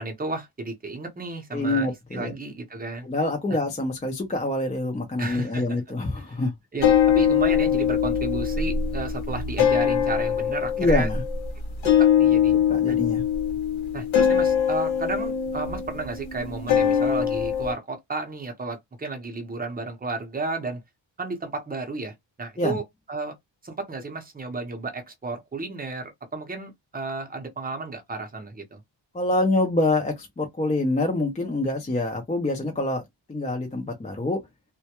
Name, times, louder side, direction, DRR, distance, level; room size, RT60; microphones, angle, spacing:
voice 1, 0.0-3.1 5.2-5.8 6.3-11.1 11.8-12.5 12.9-13.0 13.9-20.8 21.2-22.8 23.1-23.3 23.6-28.8, right 3 dB, 20° right, 0.6 m, -33 dB
voice 2, 1.5-2.3 3.0-6.5 10.8-11.2 12.7-13.2 22.6-22.8 29.1-33.0 33.3-34.4, left 2 dB, 15° left, 0.4 m, -26 dB
sound 1, 6.8-17.7, left 8 dB, 85° left, 0.8 m, -22 dB
2.2 x 2.1 x 2.8 m
wide cardioid pair, 165°, 45 cm